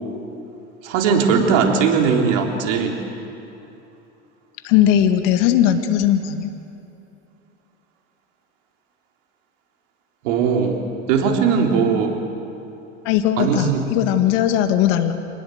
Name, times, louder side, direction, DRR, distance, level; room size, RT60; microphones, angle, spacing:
voice 1, 0.8-3.0 10.2-10.8 11.1-12.2 13.4-13.8, right 6 dB, 80° right, 2 dB, 3.7 m, -19 dB
voice 2, 4.6-6.5 13.0-15.1, left 10 dB, 75° left, 8 dB, 2.0 m, -18 dB
26.0 x 19.5 x 8.0 m, 2.9 s
hypercardioid pair, 85°, 37 cm